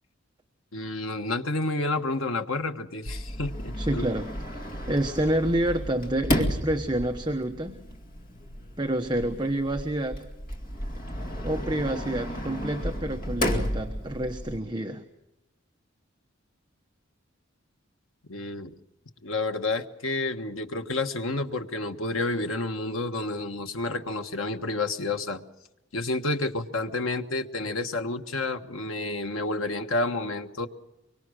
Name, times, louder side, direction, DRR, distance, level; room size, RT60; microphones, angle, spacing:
voice 1, 0.7-4.0 18.3-18.7 19.2-25.4 25.9-30.7, left 2 dB, 85° left, 6 dB, 1.5 m, -30 dB
Sliding door, 3.1-14.6, equal, 45° left, 2.4 m, -33 dB
voice 2, 3.8-7.8 8.8-10.2 11.4-15.0, right 1 dB, 20° right, 4 dB, 1.1 m, -28 dB
24.0 x 24.0 x 6.5 m, 0.93 s
head